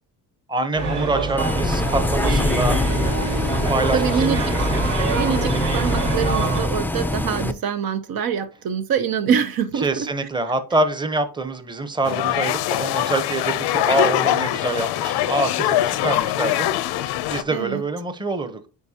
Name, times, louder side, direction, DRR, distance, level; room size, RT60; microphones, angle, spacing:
voice 1, 0.5-3.2 3.7-4.0 4.3-4.4 9.8-16.7 17.3-18.7, right 2 dB, 10° right, 0.9 m, -25 dB
sound 1, 0.7-6.6, right 3 dB, 85° right, 3.7 m, -25 dB
Bus, 1.4-7.5, left 2 dB, 5° left, 0.4 m, -24 dB
voice 2, 3.9-4.6 5.2-10.1 17.5-17.8, right 7 dB, 65° right, 0.8 m, -24 dB
sound 2, 12.0-17.4, left 13 dB, 85° left, 0.6 m, -23 dB
9.4 x 4.5 x 2.8 m
cardioid pair, 100°, 39 cm